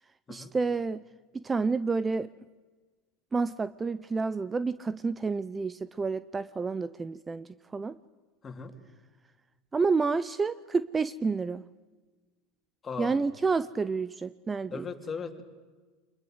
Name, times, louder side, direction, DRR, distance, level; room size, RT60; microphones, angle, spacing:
voice 1, 0.3-1.0 1.3-2.3 3.3-8.0 9.7-11.6 13.0-14.9, right 4 dB, 20° right, 16 dB, 0.7 m, -29 dB
voice 2, 12.8-13.2 14.7-15.4, left 5 dB, 25° left, 5 dB, 3.6 m, -37 dB
25.5 x 21.0 x 8.1 m, 1.3 s
hypercardioid pair, 95°, 0 cm